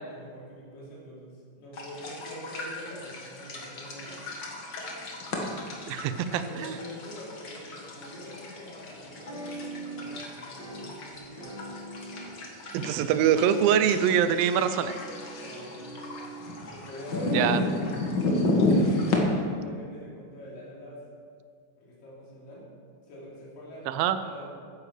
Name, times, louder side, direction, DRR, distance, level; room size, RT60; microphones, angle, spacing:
voice 1, 0.1-4.2 6.1-11.5 15.4-15.9 16.6-21.0 21.8-22.7 23.0-23.9 24.2-24.5, equal, 70° left, -6 dB, 4.7 m, -44 dB
sound 1, 1.7-19.2, left 2 dB, 50° left, 1.4 m, -32 dB
voice 2, 5.9-6.8 12.7-14.9 17.3-17.6 23.9-24.2, right 9 dB, 80° right, 11 dB, 2.4 m, -24 dB
sound 2, 9.0-10.3 10.6-12.4 12.7-14.4 14.8-16.7 17.2-17.8, right 2 dB, 30° right, 3.8 m, -43 dB
14.5 x 9.8 x 5.0 m, 2.1 s
omnidirectional pair, 4.2 m